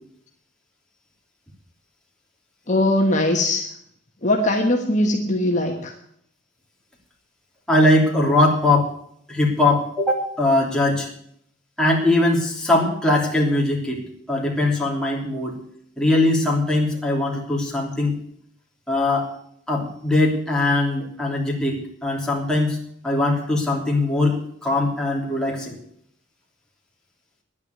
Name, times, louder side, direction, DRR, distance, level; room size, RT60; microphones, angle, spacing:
voice 1, 2.7-3.6 4.2-5.9, left 1 dB, 35° left, 1 dB, 1.4 m, -20 dB
voice 2, 7.7-8.9 9.3-11.1 11.8-15.6 16.0-18.2 18.9-19.3 19.7-22.8 23.0-25.8, left 2 dB, 5° left, -2 dB, 3.1 m, -21 dB
11.0 x 9.6 x 9.5 m, 0.68 s
head